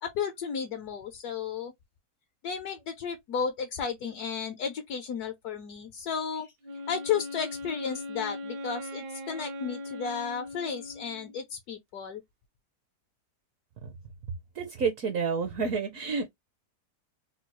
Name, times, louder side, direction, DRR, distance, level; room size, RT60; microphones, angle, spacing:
voice 1, 0.0-1.7 2.4-6.5 6.9-12.2, left 6 dB, 70° left, 1.1 m, -33 dB
Wind instrument woodwind instrument, 6.6-11.4, left 1 dB, 85° right, 1.4 m, -40 dB
voice 2, 14.6-16.3, right 5 dB, 65° right, 0.9 m, -29 dB
3.7 x 2.3 x 2.8 m
omnidirectional pair, 1.8 m